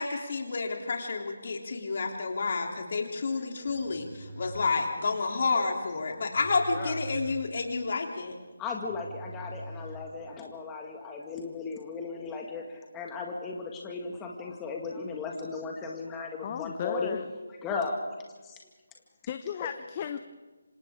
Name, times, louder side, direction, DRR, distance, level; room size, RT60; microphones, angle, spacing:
voice 1, 0.0-8.3, left 4 dB, 50° left, 2 dB, 3.3 m, -30 dB
sound 1, 3.6-10.5, equal, 15° right, 5.5 m, -45 dB
voice 2, 8.6-17.2 17.6-18.0 18.4-18.6, left 4 dB, 10° left, 0 dB, 2.0 m, -36 dB
voice 3, 16.4-17.2 19.3-20.2, left 8 dB, 30° left, 9 dB, 0.8 m, -35 dB
27.0 x 26.5 x 3.7 m, 1.3 s
figure-of-eight pair, 155°, 0 cm